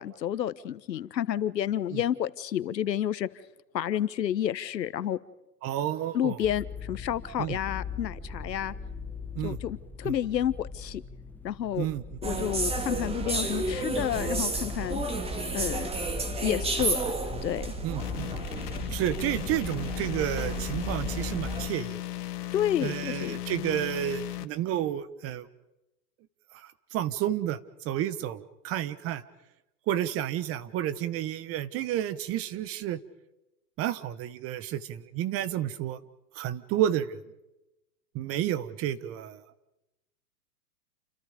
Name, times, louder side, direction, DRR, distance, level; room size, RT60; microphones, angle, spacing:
voice 1, 0.0-3.3 3.7-5.2 6.1-8.7 9.4-11.0 11.4-11.9 12.2-15.0 15.5-15.9 16.4-17.1 17.4-17.7 22.5-23.4, left 10 dB, 85° left, 15 dB, 1.3 m, -30 dB
voice 2, 5.6-6.4 7.4-7.6 9.3-9.6 10.0-10.1 11.8-12.0 17.8-18.3 18.9-22.0 22.8-25.5 26.5-29.2 29.9-33.0 33.8-36.0 36.3-37.2 38.1-39.4, right 11 dB, 30° right, 15 dB, 1.2 m, -31 dB
sound 1, 6.4-13.5, left 5 dB, 5° left, 1.0 m, -41 dB
sound 2, 12.2-21.7, right 2 dB, 10° right, 2.5 m, -32 dB
sound 3, 18.0-24.5, left 14 dB, 65° left, 1.7 m, -36 dB
29.5 x 27.5 x 5.2 m, 0.92 s
hypercardioid pair, 130°, 49 cm